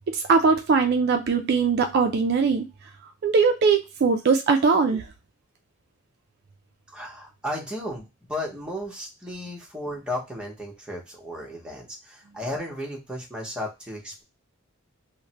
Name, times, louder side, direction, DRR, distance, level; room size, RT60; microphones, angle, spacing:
voice 1, 0.1-2.7 3.2-5.0, right 5 dB, 50° right, 5 dB, 0.3 m, -21 dB
voice 2, 6.9-14.2, left 1 dB, 5° right, -2 dB, 0.9 m, -34 dB
3.1 x 2.1 x 2.8 m, 0.25 s
head